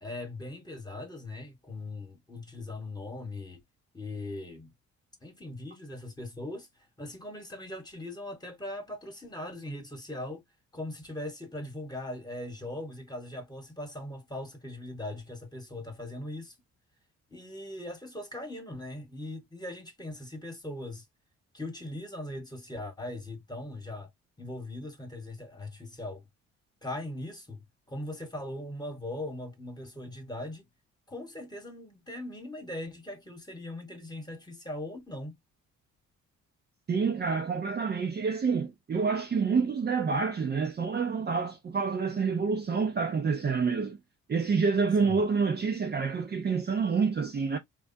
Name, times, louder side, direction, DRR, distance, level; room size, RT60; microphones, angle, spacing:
voice 1, 0.0-3.6 3.9-4.7 5.2-6.7 7.0-10.4 10.7-16.5 17.3-21.0 21.5-24.1 24.4-26.2 26.8-30.7 31.1-35.3 45.0-45.2, left 1 dB, 15° left, 1.2 m, -40 dB
voice 2, 36.9-44.0 44.3-47.6, right 5 dB, 35° right, 0.6 m, -28 dB
3.3 x 2.3 x 2.5 m
cardioid pair, 90°, 30 cm